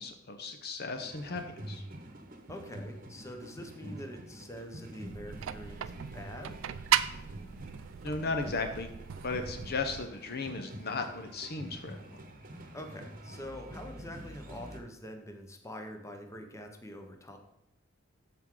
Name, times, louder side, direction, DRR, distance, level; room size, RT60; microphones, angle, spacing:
voice 1, 0.0-1.8 8.0-8.9 9.2-12.2, left 3 dB, 50° left, 7 dB, 0.7 m, -36 dB
sound 1, 0.9-14.8, right 1 dB, 45° right, 1.0 m, -47 dB
voice 2, 2.5-6.6 12.7-17.4, equal, 15° left, 4 dB, 0.9 m, -45 dB
sound 2, 5.1-10.1, right 10 dB, 70° right, 0.4 m, -35 dB
13.5 x 4.6 x 3.7 m, 0.83 s
head